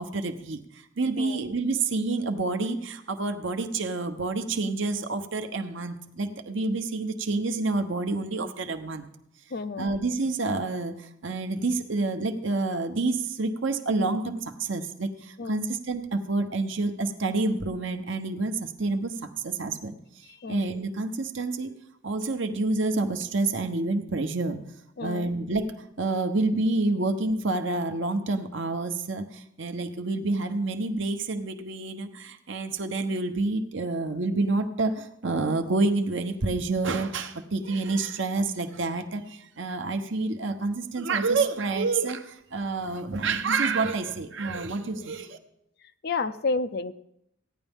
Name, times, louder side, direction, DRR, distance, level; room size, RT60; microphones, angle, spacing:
voice 1, 0.0-9.0 9.8-21.7 22.0-24.6 25.0-45.4, right 3 dB, 60° right, 7 dB, 0.9 m, -28 dB
voice 2, 9.5-9.9 15.4-15.6 20.3-20.6 25.0-25.3 45.0-45.1 46.0-46.9, left 3 dB, 50° left, 12 dB, 0.4 m, -31 dB
15.5 x 9.9 x 3.6 m, 0.79 s
head